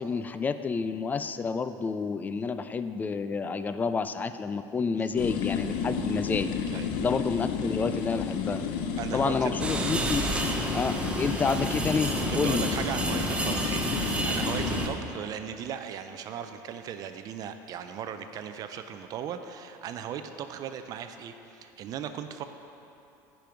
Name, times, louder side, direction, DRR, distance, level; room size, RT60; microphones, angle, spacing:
voice 1, 0.0-6.5 7.0-8.6 9.1-10.2 10.7-12.7, left 5 dB, 20° left, 11 dB, 0.3 m, -29 dB
sound 1, 5.2-14.9, left 7 dB, 65° left, 0.7 m, -32 dB
voice 2, 9.0-9.5 12.3-22.4, right 8 dB, 50° right, 8 dB, 0.5 m, -37 dB
sound 2, 9.6-14.9, right 2 dB, 15° right, 0.8 m, -30 dB
10.5 x 5.3 x 4.5 m, 2.8 s
supercardioid pair, 115°, 8 cm